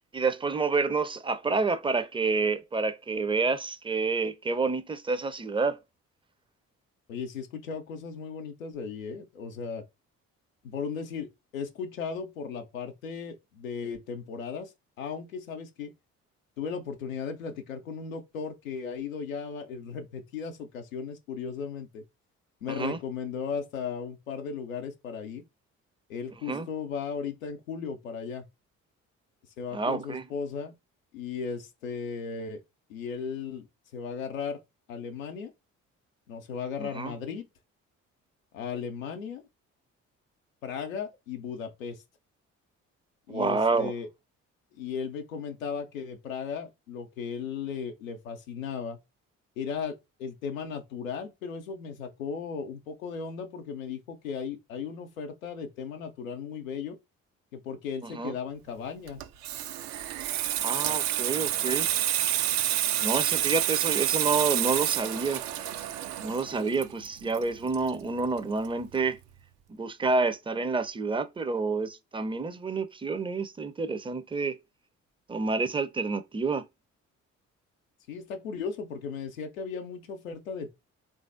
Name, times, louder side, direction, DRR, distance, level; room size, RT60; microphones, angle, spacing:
voice 1, 0.1-5.8 22.7-23.0 26.5-26.7 29.7-30.3 36.8-37.1 43.3-43.9 58.0-58.4 60.6-61.9 63.0-65.4 66.2-69.2 69.7-74.6 75.3-76.7, right 4 dB, 15° right, 0.5 m, -28 dB
voice 2, 7.1-9.9 10.6-14.7 15.0-15.9 16.6-22.0 22.6-25.4 26.1-28.4 29.6-30.7 31.1-32.6 32.9-33.7 33.9-34.6 34.9-35.5 36.3-37.5 38.5-39.4 40.6-42.0 43.3-44.1 44.8-49.0 49.6-57.0 57.5-59.2 78.1-80.7, left 6 dB, 90° left, 0.5 m, -36 dB
Water tap faucet / Sink (filling or washing), 59.1-68.4 68.7-68.9, right 12 dB, 65° right, 0.5 m, -29 dB
3.1 x 2.6 x 2.5 m
figure-of-eight pair, 45°, 39 cm